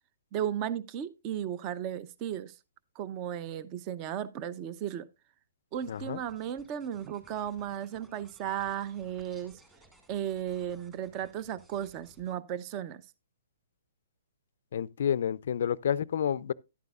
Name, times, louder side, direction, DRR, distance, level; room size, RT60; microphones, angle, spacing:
voice 1, 0.3-2.5 3.0-5.1 5.7-9.5 10.1-13.0, right 10 dB, 25° right, 0.6 m, -35 dB
sound 1, 5.7-12.3, right 1 dB, 10° right, 1.8 m, -61 dB
voice 2, 5.9-6.2 14.7-16.5, left 9 dB, 60° left, 0.4 m, -29 dB
11.5 x 9.3 x 2.4 m
hypercardioid pair, 160°, 0 cm